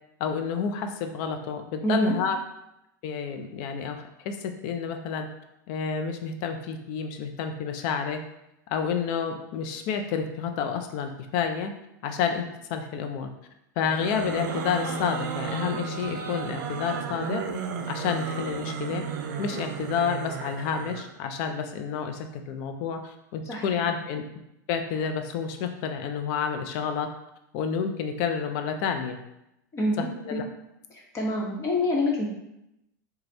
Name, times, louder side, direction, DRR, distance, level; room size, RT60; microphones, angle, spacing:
voice 1, 0.2-2.4 3.0-5.3 5.7-8.2 8.7-11.7 12.0-13.3 13.8-17.4 17.9-19.0 19.4-24.2 24.7-27.1 27.5-29.2 30.0-30.4, left 6 dB, 55° left, 6 dB, 0.5 m, -29 dB
voice 2, 1.8-2.1 23.4-23.9 29.7-30.4 30.9-32.3, left 1 dB, 30° left, -2 dB, 1.1 m, -27 dB
sound 1, 13.8-21.1, right 6 dB, 75° right, 0.4 m, -33 dB
3.3 x 2.3 x 3.9 m, 0.84 s
hypercardioid pair, 110°, 10 cm